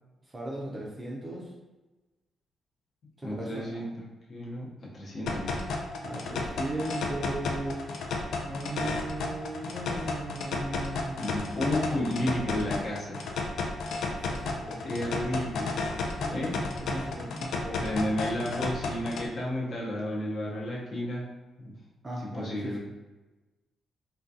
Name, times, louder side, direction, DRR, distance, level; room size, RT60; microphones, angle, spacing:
voice 1, 0.3-1.5 3.2-3.9 6.0-7.8 8.4-11.3 14.3-14.8 16.2-17.9 22.0-22.8, right 1 dB, 15° right, -3 dB, 0.4 m, -37 dB
voice 2, 3.2-5.6 11.2-13.2 14.8-15.8 16.3-16.6 17.8-21.2 21.6-21.7 22.2-22.8, left 1 dB, 40° left, -4 dB, 0.7 m, -32 dB
sound 1, 5.3-19.3, left 3 dB, 70° left, 0.4 m, -33 dB
3.6 x 2.2 x 2.6 m, 1.1 s
wide cardioid pair, 180°, 0 cm